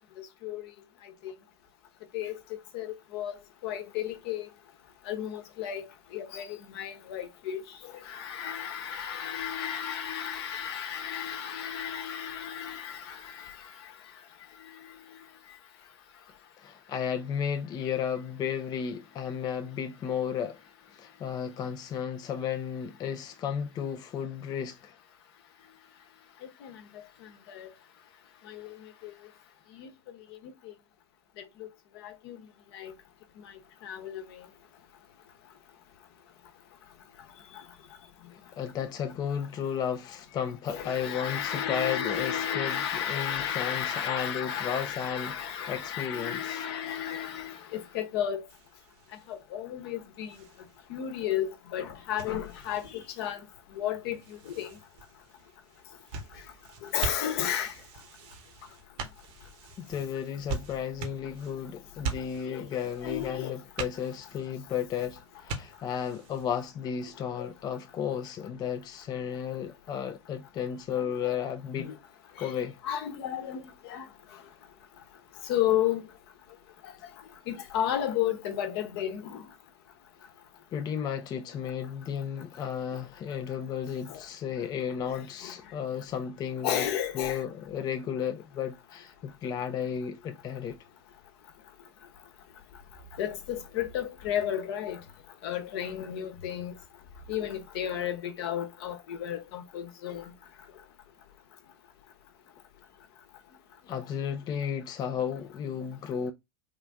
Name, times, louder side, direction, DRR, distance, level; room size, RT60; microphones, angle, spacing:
voice 1, 0.2-0.7 1.0-1.3 2.1-2.4 2.7-3.3 3.6-4.5 5.1-5.9 6.1-13.9 26.6-26.8 27.2-27.7 28.5-29.1 29.7-29.9 30.6-30.7 32.0-32.4 32.7-32.9 33.8-34.5 37.5-37.6 40.7-48.4 49.3-50.3 50.9-53.4 53.7-54.8 56.8-57.7 62.5-62.6 63.0-63.6 67.4-67.5 71.0-71.1 71.7-71.9 72.4-72.6 72.8-74.1 75.4-76.0 77.5-79.4 84.1-84.2 85.4-85.5 86.6-87.4 93.2-95.0 95.4-96.7 97.3-100.3, left 10 dB, 60° left, 0.9 m, -33 dB
voice 2, 16.6-20.6 20.9-25.0 38.3-46.6 59.8-71.9 72.4-72.8 80.7-86.9 87.1-90.8 103.9-106.3, left 8 dB, 25° left, 0.4 m, -33 dB
sound 1, 48.5-66.7, right 4 dB, 55° right, 0.9 m, -43 dB
3.6 x 2.5 x 3.4 m
hypercardioid pair, 85°, 15 cm